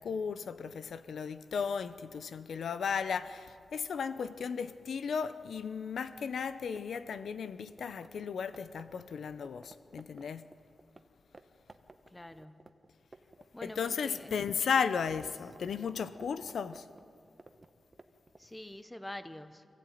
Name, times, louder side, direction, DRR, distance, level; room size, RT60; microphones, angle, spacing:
voice 1, 0.0-10.5 13.6-16.9, left 6 dB, 85° left, 0.7 m, -35 dB
sound 1, 6.4-11.0 11.3-11.4 11.7-13.4 13.7-18.5, right 3 dB, 25° right, 1.0 m, -55 dB
voice 2, 12.1-12.7 13.5-14.4 18.4-19.7, left 1 dB, 10° left, 0.9 m, -46 dB
24.5 x 15.0 x 9.3 m
wide cardioid pair, 135°, 0 cm